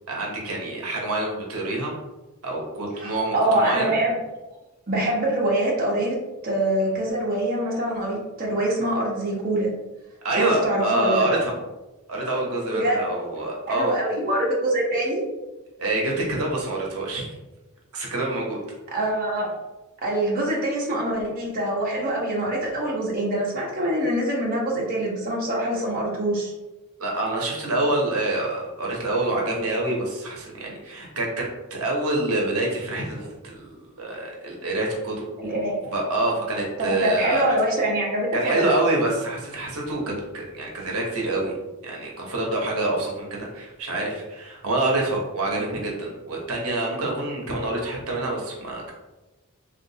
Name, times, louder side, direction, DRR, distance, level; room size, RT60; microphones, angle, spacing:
voice 1, 0.1-1.9 2.4-3.9 10.2-11.5 12.1-13.9 15.8-17.3 17.9-18.6 27.0-35.3 35.9-37.5 38.3-41.5 41.8-48.9, right 2 dB, 70° right, -1 dB, 0.9 m, -26 dB
voice 2, 3.0-4.2 4.9-9.7 10.4-11.3 12.7-13.0 13.7-15.2 18.9-19.5 20.0-26.5 35.4-35.9 36.8-38.7 45.6-45.7, right 1 dB, 40° right, -4 dB, 0.8 m, -24 dB
3.6 x 2.5 x 2.7 m, 1.1 s
head